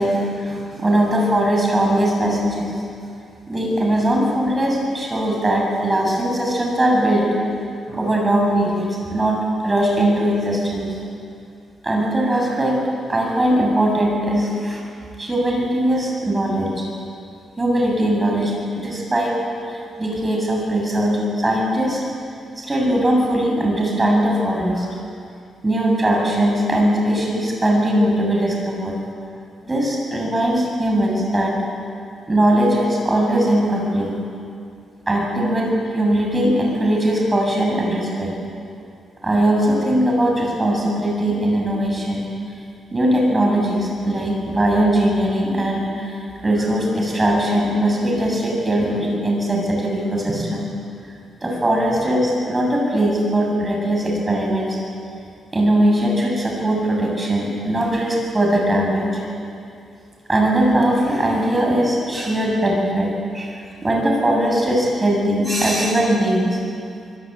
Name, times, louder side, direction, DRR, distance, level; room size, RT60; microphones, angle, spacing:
voice 1, 0.0-2.7 3.5-7.3 7.9-10.9 11.8-12.8 13.1-14.8 15.2-16.7 17.6-19.4 19.7-22.0 22.6-24.9 25.6-29.0 29.6-31.6 32.3-34.1 35.1-38.3 39.2-42.3 42.9-46.1 46.4-50.7 51.4-54.8 55.5-59.1 60.3-66.6, right 1 dB, 20° right, -1 dB, 7.5 m, -20 dB
24.5 x 21.5 x 9.0 m, 2.5 s
cardioid pair, 125°, 0 cm